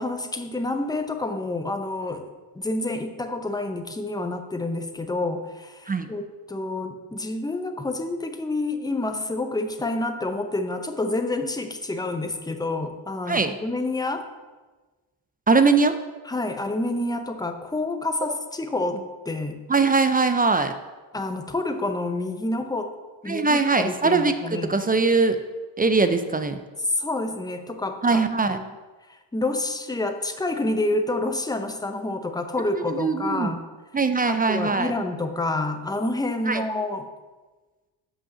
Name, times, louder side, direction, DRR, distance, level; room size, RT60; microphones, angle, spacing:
voice 1, 0.0-14.3 16.2-19.6 21.1-22.9 23.2-24.8 27.0-28.7 29.1-33.6 34.3-37.1, left 2 dB, 10° left, 7 dB, 0.7 m, -28 dB
voice 2, 15.5-16.0 19.7-20.7 23.3-25.4 25.8-26.6 28.0-28.6 32.9-33.5 33.9-34.9 36.5-36.6, right 4 dB, 20° right, 9 dB, 0.4 m, -21 dB
5.6 x 5.5 x 6.8 m, 1.3 s
cardioid pair, 80°, 46 cm